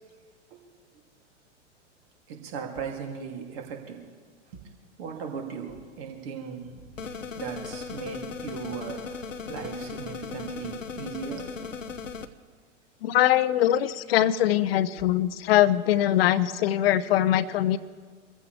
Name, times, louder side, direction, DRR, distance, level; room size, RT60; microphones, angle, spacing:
voice 1, 2.3-4.1 4.5-4.6 5.0-6.9 7.3-11.5, right 6 dB, 55° right, 1 dB, 2.8 m, -37 dB
sound 1, 7.0-12.3, left 5 dB, 90° left, 0.8 m, -37 dB
voice 2, 13.0-17.8, left 12 dB, 50° left, 15 dB, 0.7 m, -22 dB
25.0 x 14.5 x 3.4 m, 1.5 s
figure-of-eight pair, 100°, 37 cm